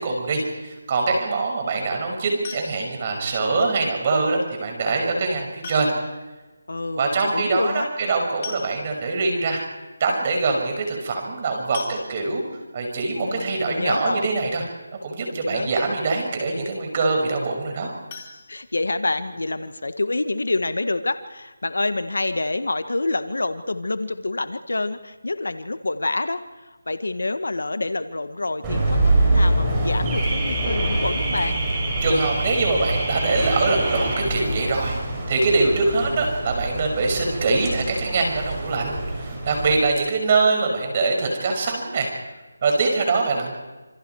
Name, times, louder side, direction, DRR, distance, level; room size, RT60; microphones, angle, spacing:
voice 1, 0.0-5.9 6.9-9.6 10.0-12.4 12.7-14.7 15.0-17.9 32.0-35.0 35.3-42.1 42.6-43.5, right 3 dB, 30° right, 2 dB, 6.5 m, -23 dB
sound 1, 2.4-3.1 4.6-4.7 5.6-6.2 6.5-6.6 6.9-7.0 8.0-8.1 8.4-9.1 9.7-9.8 10.1-10.3 11.7-12.6 18.1-19.3 19.6-19.7 20.2-20.3 20.6-20.7, left 5 dB, 30° left, 4.0 m, -40 dB
voice 2, 6.7-7.9 13.2-14.2 15.3-15.7 18.5-31.6, left 2 dB, 80° left, 10 dB, 1.7 m, -27 dB
Car / Alarm, 28.6-39.8, right 1 dB, 15° right, 6.8 m, -24 dB
28.0 x 27.0 x 4.8 m, 1.2 s
figure-of-eight pair, 165°, 0 cm